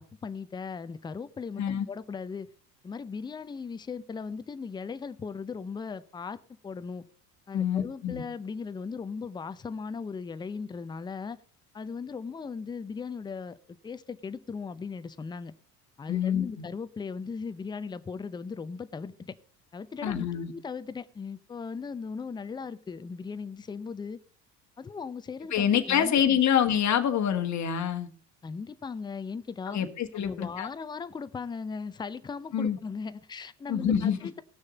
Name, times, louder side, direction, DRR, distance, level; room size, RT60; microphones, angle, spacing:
voice 1, 0.0-2.5 2.8-7.1 7.5-11.4 11.7-13.6 13.8-15.5 16.0-19.3 19.7-24.2 24.8-26.4 28.4-29.8 30.1-34.4, left 5 dB, 10° left, 0.4 m, -38 dB
voice 2, 7.5-8.2 16.1-16.6 20.0-20.5 25.5-28.1 29.7-30.7 32.5-32.8 33.7-34.2, left 8 dB, 35° left, 1.4 m, -26 dB
18.0 x 6.4 x 3.9 m
hypercardioid pair, 70°, 48 cm